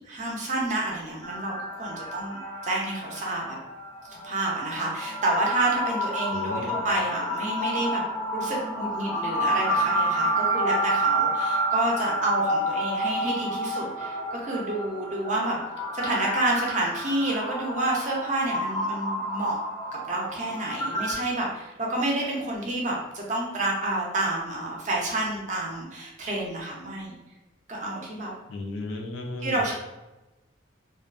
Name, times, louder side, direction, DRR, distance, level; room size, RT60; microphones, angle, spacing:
voice 1, 0.1-3.6 4.2-8.0 8.3-15.6 15.9-19.6 19.9-27.2 27.7-28.3 29.4-29.8, right 2 dB, 40° right, -2 dB, 0.5 m, -29 dB
sound 1, 1.2-21.1, right 1 dB, 15° left, 0.4 m, -29 dB
voice 2, 6.3-6.8 28.5-29.6, left 2 dB, 90° left, 2 dB, 0.4 m, -35 dB
2.4 x 2.3 x 2.3 m, 1.0 s
head